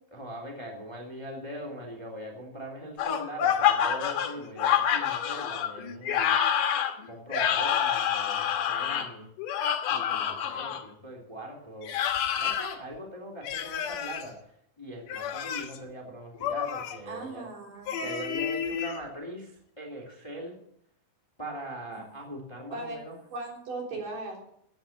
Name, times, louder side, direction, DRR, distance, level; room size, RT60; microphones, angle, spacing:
voice 1, 0.1-6.4 7.1-9.3 9.9-11.9 12.3-17.5 18.0-20.6 21.4-23.2, equal, 10° left, 0 dB, 2.5 m, -41 dB
sound 1, 3.0-10.8 11.8-12.8 13.4-14.2 15.0-15.8 16.4-17.0 17.9-19.0, left 9 dB, 70° left, 2.8 m, -28 dB
voice 2, 17.1-18.0 22.7-23.0 23.3-24.5, right 2 dB, 65° right, -1 dB, 5.3 m, -37 dB
14.5 x 8.9 x 7.3 m, 0.71 s
omnidirectional pair, 4.1 m